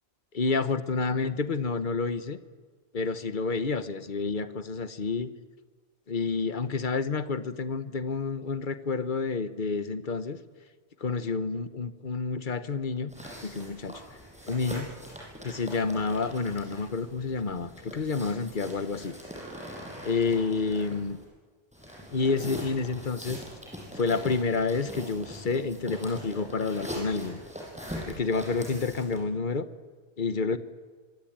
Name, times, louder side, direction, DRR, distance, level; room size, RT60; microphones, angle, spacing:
voice 1, 0.3-2.4 2.9-5.3 6.1-10.4 11.0-13.1 13.4-14.2 14.5-14.9 15.4-19.1 20.0-21.2 22.1-23.4 23.9-27.4 28.1-29.7 30.2-30.6, left 4 dB, 50° left, 11 dB, 1.3 m, -29 dB
sound 1, 13.1-21.2 21.7-29.2, equal, 5° right, 7.8 m, -42 dB
25.0 x 24.0 x 8.9 m, 1.5 s
omnidirectional pair, 1.1 m